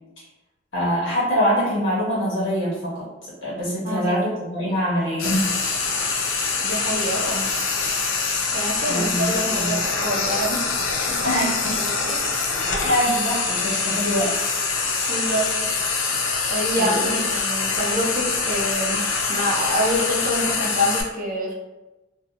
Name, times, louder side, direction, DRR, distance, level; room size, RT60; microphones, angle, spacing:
voice 1, 0.7-3.0 3.4-5.5 8.9-9.7 11.2-11.8 12.8-14.3 16.8-17.2, equal, 65° left, -8 dB, 1.4 m, -24 dB
voice 2, 3.8-4.2 6.6-7.5 8.5-10.7 10.9-11.5 11.8-12.2 15.1-15.5 16.5-19.0 19.3-21.5, equal, 45° right, -2 dB, 0.6 m, -26 dB
Frying (food), 5.2-21.0, left 4 dB, 85° left, 0.5 m, -24 dB
2.8 x 2.6 x 2.4 m, 1.1 s
head